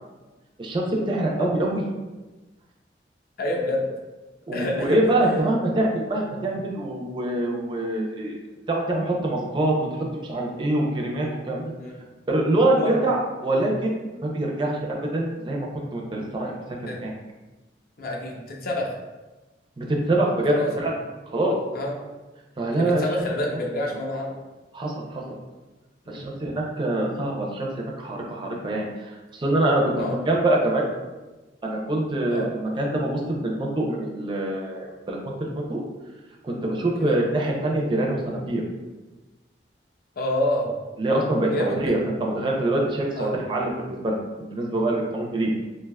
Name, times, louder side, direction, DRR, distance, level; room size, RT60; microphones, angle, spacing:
voice 1, 0.6-1.8 4.5-8.4 8.7-11.6 12.3-13.9 14.2-16.5 16.8-17.1 19.8-20.9 21.3-21.5 22.6-23.0 24.7-25.2 26.1-30.9 31.6-35.8 36.4-38.6 41.0-45.5, right 1 dB, 25° right, -1 dB, 0.4 m, -25 dB
voice 2, 3.4-3.9 4.5-5.4 5.7-5.8 6.4-6.5 11.8-12.0 12.8-13.1 16.9-17.0 18.0-19.0 20.5-20.9 21.7-21.9 22.7-24.4 26.1-26.2 29.9-30.2 32.3-32.5 36.9-37.2 40.2-40.7 41.5-41.9 43.1-43.3, left 1 dB, 55° left, 0 dB, 0.6 m, -28 dB
3.4 x 2.7 x 2.2 m, 1.2 s
head